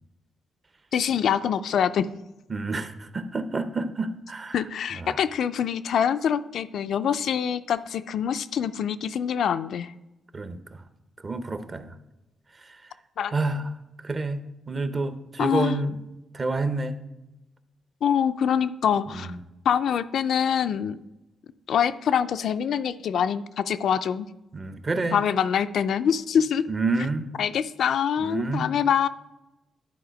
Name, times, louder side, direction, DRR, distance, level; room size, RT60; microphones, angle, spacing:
voice 1, 0.9-2.1 4.5-9.9 13.2-13.3 15.4-15.8 18.0-19.3 19.7-21.0 21.7-24.3 25.1-26.6 27.4-29.1, left 8 dB, 70° left, 11 dB, 0.3 m, -25 dB
voice 2, 2.5-4.6 5.0-5.2 10.3-10.8 11.2-11.9 12.7-12.8 13.3-13.7 14.0-16.0 16.3-17.0 19.1-19.4 24.5-25.2 26.7-27.3 28.2-28.6, right 3 dB, 30° right, 11 dB, 0.6 m, -29 dB
10.5 x 4.1 x 5.1 m, 0.98 s
cardioid pair, 125°, 0 cm